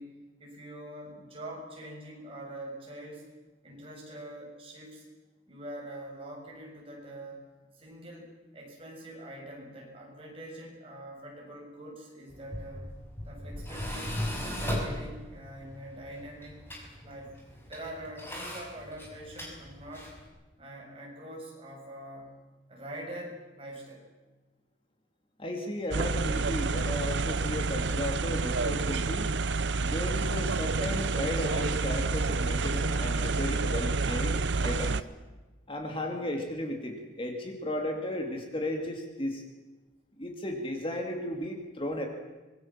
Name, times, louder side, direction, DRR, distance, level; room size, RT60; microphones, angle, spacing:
voice 1, 0.0-3.3 3.6-5.1 5.5-13.0 13.3-16.6 17.0-20.1 20.6-22.4 22.7-24.0, right 1 dB, 30° right, -1 dB, 6.9 m, -44 dB
Tools, 12.3-20.3, left 1 dB, 15° left, 6.2 m, -38 dB
voice 2, 25.4-29.3 29.8-35.1 35.7-39.4 40.2-42.1, left 1 dB, 30° left, 3 dB, 2.5 m, -35 dB
sound 1, 25.9-35.0, right 3 dB, 70° right, 0.8 m, -29 dB
25.0 x 22.0 x 7.4 m, 1.2 s
head